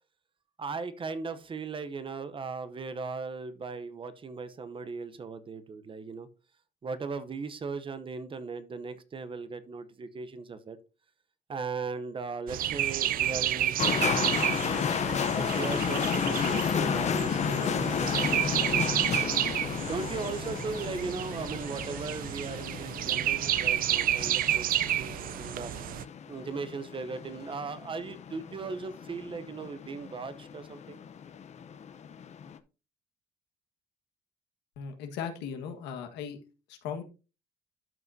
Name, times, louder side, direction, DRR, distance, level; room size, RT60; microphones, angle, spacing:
voice 1, 0.6-6.3 6.8-10.8 11.5-14.9 15.4-18.4 18.7-19.3 19.8-24.7 25.0-25.7 26.3-31.0, right 4 dB, 30° right, 12 dB, 0.8 m, -38 dB
sound 1, 12.5-26.0, right 12 dB, 55° right, 0.5 m, -30 dB
sound 2, 13.8-32.6, left 7 dB, 40° left, 0.7 m, -33 dB
voice 2, 34.8-36.4 36.7-37.0, left 7 dB, 90° left, 5 dB, 1.6 m, -37 dB
12.0 x 5.4 x 2.7 m, 0.31 s
cardioid pair, 110°, 17 cm